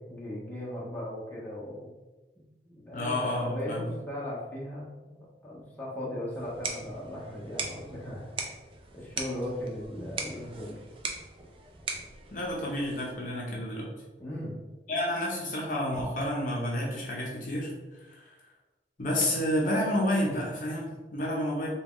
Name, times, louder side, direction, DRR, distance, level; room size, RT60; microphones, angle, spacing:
voice 1, 0.1-2.0 2.4-5.1 5.4-8.3 8.9-10.8 14.2-14.6, left 1 dB, 10° left, -6 dB, 0.8 m, -38 dB
voice 2, 2.9-3.8 12.3-13.9 14.9-17.7 18.1-18.3 19.0-21.7, left 1 dB, 45° left, -3 dB, 0.7 m, -30 dB
sound 1, 6.3-13.3, right 4 dB, 30° right, 0.4 m, -40 dB
3.5 x 2.3 x 3.5 m, 1.2 s
head